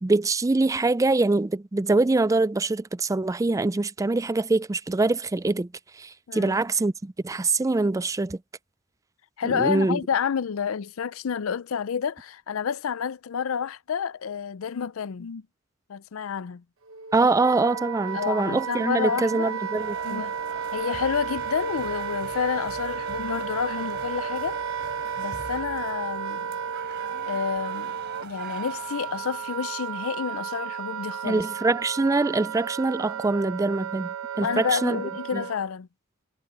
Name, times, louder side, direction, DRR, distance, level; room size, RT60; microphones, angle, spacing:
voice 1, 0.0-5.7 5.9-8.4 9.4-10.0 17.1-20.2 31.2-34.1 34.4-35.0 35.3-35.4, right 3 dB, 15° right, 0.4 m, -24 dB
voice 2, 9.4-15.5 15.9-16.6 18.1-19.6 20.0-20.3 20.7-24.6 25.2-26.5 27.3-31.4 34.4-35.9, left 7 dB, 85° left, 0.5 m, -29 dB
Wind instrument woodwind instrument, 16.9-35.7, right 7 dB, 80° right, 1.1 m, -33 dB
sound 1, 19.8-29.6, right 4 dB, 55° right, 4.0 m, -41 dB
head